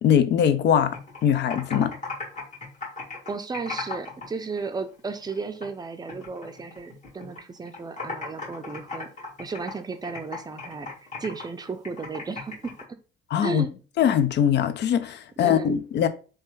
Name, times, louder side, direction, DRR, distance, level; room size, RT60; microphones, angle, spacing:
voice 1, 0.0-1.0 1.2-1.9 13.3-13.7 14.0-16.1, left 9 dB, 60° left, 0.4 m, -21 dB
Computer keyboard, 0.7-4.3 4.6-5.8 6.1-7.4 7.7-12.8, left 3 dB, 40° left, 1.6 m, -37 dB
voice 2, 3.3-13.0 13.4-13.7 15.4-15.7, right 4 dB, 20° right, 0.4 m, -34 dB
3.2 x 2.2 x 3.1 m
cardioid pair, 90°, 20 cm